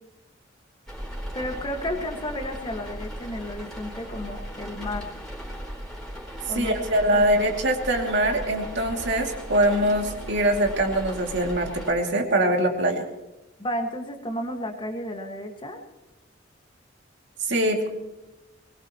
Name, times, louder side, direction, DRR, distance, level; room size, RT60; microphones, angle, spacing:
sound 1, 0.9-11.9, equal, 5° left, 4.3 m, -37 dB
voice 1, 1.3-5.1 6.5-7.5 13.6-15.8, left 1 dB, 25° left, 3 dB, 1.8 m, -33 dB
voice 2, 6.5-13.0 17.4-18.0, right 1 dB, 60° right, 2 dB, 2.6 m, -23 dB
22.5 x 20.5 x 3.0 m, 1.0 s
head